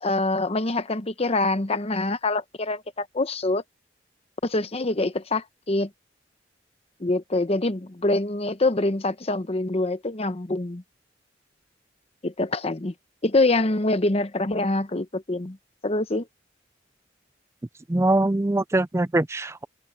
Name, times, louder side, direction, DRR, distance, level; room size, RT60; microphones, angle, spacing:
voice 1, 0.0-3.6 4.4-5.9 7.0-10.8 12.2-12.9 13.2-15.6 15.8-16.3, left 2 dB, 30° left, 0.9 m, -25 dB
voice 2, 17.9-19.6, right 2 dB, 15° right, 0.4 m, -22 dB
open air
head